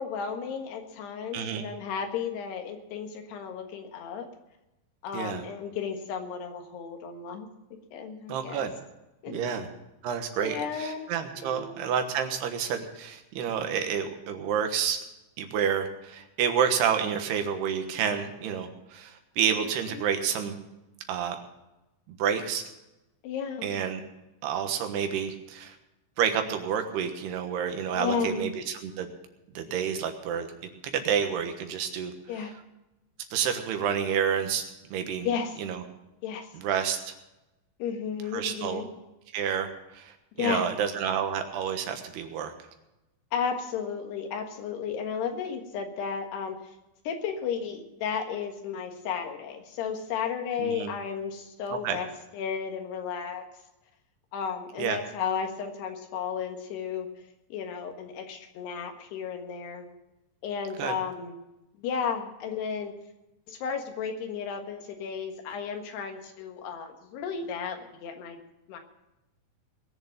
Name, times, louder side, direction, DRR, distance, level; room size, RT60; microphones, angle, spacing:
voice 1, 0.0-4.3 5.0-7.5 7.9-8.7 9.2-9.6 10.4-11.1 11.4-11.8 19.9-20.0 23.2-23.8 27.9-28.5 32.3-32.5 35.3-35.6 36.2-36.5 37.8-38.9 40.4-40.7 43.3-46.6 47.1-52.1 52.3-53.4 54.3-57.1 57.5-59.9 60.4-61.4 61.8-62.9 63.5-68.4 68.7-68.8, left 6 dB, 90° left, 5 dB, 3.7 m, -33 dB
voice 2, 1.3-1.6 5.1-5.4 8.3-8.7 9.3-9.7 10.0-15.0 15.4-20.6 21.1-21.4 22.1-22.6 23.6-24.0 24.4-25.8 26.2-29.1 29.5-30.5 30.9-32.1 33.3-34.6 34.9-35.3 35.6-35.8 36.5-37.1 38.3-38.8 39.3-42.5 50.6-50.9 51.8-52.0 54.8-55.0 60.8-60.9, right 8 dB, 85° right, 6 dB, 3.4 m, -29 dB
20.5 x 7.2 x 7.2 m, 0.97 s
omnidirectional pair, 4.6 m